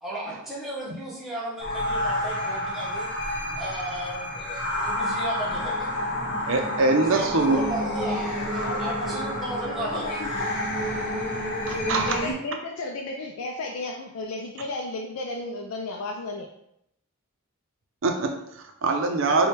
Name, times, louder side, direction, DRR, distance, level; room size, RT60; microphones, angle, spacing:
voice 1, 0.0-3.1 3.6-5.9 7.1-10.2, right 1 dB, ahead, -7 dB, 0.8 m, -35 dB
sound 1, 1.6-12.3, left 1 dB, 55° left, 0.9 m, -29 dB
voice 2, 6.5-7.6 11.7-12.2 18.0-19.5, right 3 dB, 60° right, 4 dB, 0.5 m, -23 dB
voice 3, 8.5-9.1 9.6-10.5 12.1-16.5, left 2 dB, 85° left, 0 dB, 0.4 m, -34 dB
3.3 x 2.2 x 4.2 m, 0.78 s
head